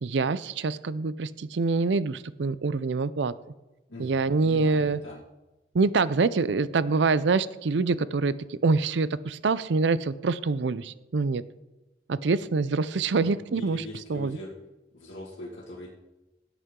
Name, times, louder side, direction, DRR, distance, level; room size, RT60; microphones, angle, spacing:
voice 1, 0.0-3.3 4.0-5.0 5.7-11.4 12.1-13.8 14.1-14.4, right 4 dB, 75° right, 16 dB, 0.5 m, -25 dB
voice 2, 3.9-5.2 13.2-14.5 14.9-15.9, left 1 dB, 80° left, -6 dB, 2.0 m, -41 dB
17.0 x 8.2 x 3.8 m, 1.0 s
head